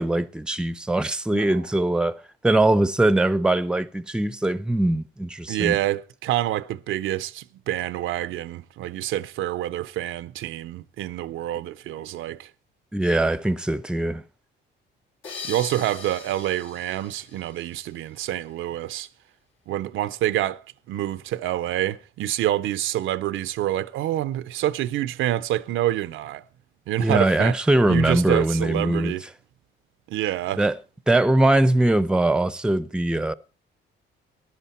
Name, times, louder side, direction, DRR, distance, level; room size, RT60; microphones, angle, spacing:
voice 1, 0.0-5.8 12.9-14.2 27.0-29.1 30.6-30.7 31.1-33.3, right 1 dB, 5° right, 0.6 m, -21 dB
voice 2, 5.5-12.5 15.4-19.1 19.7-20.6 20.9-26.4 26.9-27.6 27.9-29.2 30.1-30.6, right 13 dB, 80° right, 0.6 m, -27 dB
sound 1, 15.2-18.3, left 5 dB, 80° left, 3.6 m, -41 dB
14.5 x 10.5 x 4.3 m
cardioid pair, 90°, 20 cm